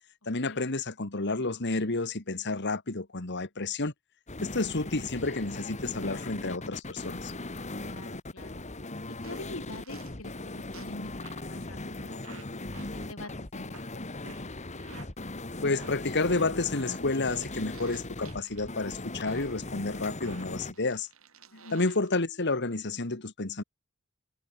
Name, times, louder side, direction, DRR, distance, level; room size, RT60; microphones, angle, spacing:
voice 1, 0.3-3.9 4.4-7.3 15.6-21.1 21.7-23.6, left 3 dB, 55° left, 1.9 m, -30 dB
sound 1, 4.3-20.7, left 2 dB, 35° left, 2.0 m, -39 dB
voice 2, 7.8-8.6 9.0-12.6 12.9-14.1 21.5-21.8, left 2 dB, 70° left, 4.7 m, -46 dB
sound 2, 9.2-9.4 9.7-10.1 10.7-11.0 11.2-11.5 12.2-12.5 12.7-12.9 13.2-13.3 13.7-13.9 14.2-14.5 14.8-15.1 15.7-15.9 16.2-18.6 19.2-19.5 20.2-22.1, right 4 dB, 70° right, 7.6 m, -50 dB
head